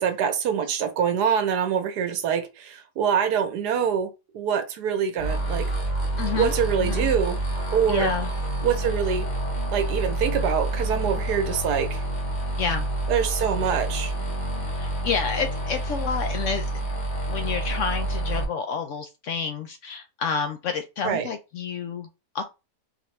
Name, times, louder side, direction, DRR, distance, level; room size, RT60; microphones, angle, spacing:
voice 1, 0.0-5.7 6.3-7.4 7.7-8.1 8.6-9.3 9.7-12.0 13.1-14.1 21.0-21.3, right 7 dB, 80° right, 1.3 m, -25 dB
sound 1, 5.2-18.4, right 1 dB, 30° left, 1.1 m, -28 dB
voice 2, 6.2-6.5 6.8-7.1 7.9-8.3 12.6-12.9 14.8-16.6 17.3-22.1 22.3-22.4, left 6 dB, 65° left, 0.8 m, -29 dB
3.9 x 2.9 x 3.2 m
omnidirectional pair, 1.7 m